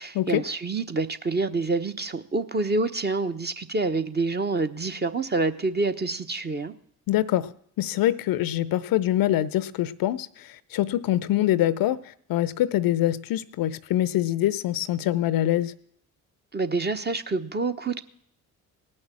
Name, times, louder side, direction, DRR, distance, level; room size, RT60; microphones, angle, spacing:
voice 1, 0.0-6.7 16.5-18.0, right 3 dB, 25° right, 9 dB, 0.9 m, -27 dB
voice 2, 7.1-7.5 7.8-12.0 12.3-15.7, left 13 dB, 55° left, 19 dB, 0.6 m, -24 dB
18.0 x 6.4 x 7.4 m, 0.68 s
hypercardioid pair, 45°, 43 cm